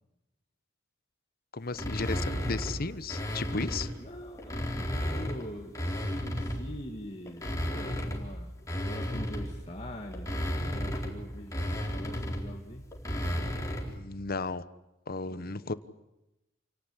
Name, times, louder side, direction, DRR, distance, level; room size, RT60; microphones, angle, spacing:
voice 1, 1.5-3.9 13.9-14.6 15.1-15.7, left 3 dB, 50° left, 14 dB, 1.2 m, -34 dB
sound 1, 1.7-4.0 4.4-6.8 7.3-14.0, equal, 15° left, 4.0 m, -34 dB
voice 2, 4.0-4.9 5.2-8.5 8.8-10.3 10.6-11.6 11.9-12.9 15.3-15.7, equal, 30° left, 1 dB, 2.6 m, -44 dB
28.5 x 18.5 x 10.0 m, 0.94 s
head